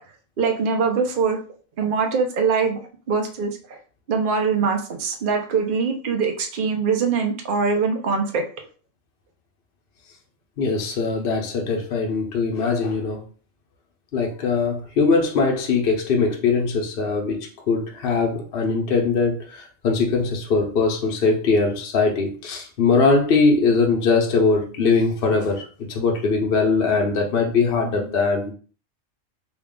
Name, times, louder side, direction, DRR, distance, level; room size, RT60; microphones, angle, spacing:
voice 1, 0.4-1.4 1.8-2.8 3.1-3.8 4.1-8.4, right 5 dB, 50° right, 4 dB, 0.7 m, -22 dB
voice 2, 10.6-13.2 14.1-28.5, left 4 dB, 50° left, 1 dB, 0.8 m, -21 dB
3.5 x 2.4 x 3.6 m, 0.39 s
omnidirectional pair, 1.5 m